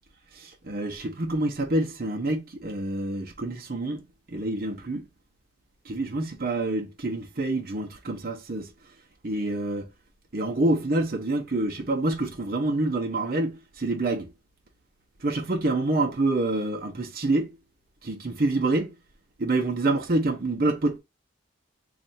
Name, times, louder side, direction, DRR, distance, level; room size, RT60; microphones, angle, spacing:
voice 1, 0.3-5.1 5.8-8.7 9.2-9.9 10.3-14.3 15.2-17.6 18.0-19.0 19.4-21.0, right 2 dB, 50° right, 0.7 m, -27 dB
3.1 x 2.4 x 4.1 m
head